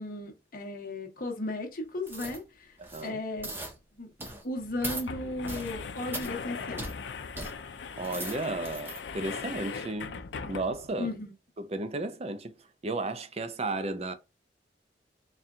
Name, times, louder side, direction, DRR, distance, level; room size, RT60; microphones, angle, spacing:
voice 1, 0.0-2.7 3.0-3.5 4.0-4.1 4.4-6.8 11.0-11.3, left 2 dB, 50° left, 1.1 m, -35 dB
sound 1, 2.1-2.4 2.8-3.1 3.4-3.7 4.2-4.4 4.8-5.1 5.5-5.7 6.1-6.3 6.8-6.9 7.4-7.5 7.9-9.0 9.5-9.6, right 1 dB, 15° right, 0.8 m, -38 dB
voice 2, 2.8-3.2 8.0-10.2 10.4-11.1 11.6-12.5 12.8-14.1, right 2 dB, 35° right, 0.5 m, -34 dB
sound 2, 3.4-3.5 3.8-3.9 4.6-11.0, left 5 dB, 85° left, 0.5 m, -40 dB
4.3 x 2.4 x 3.6 m
head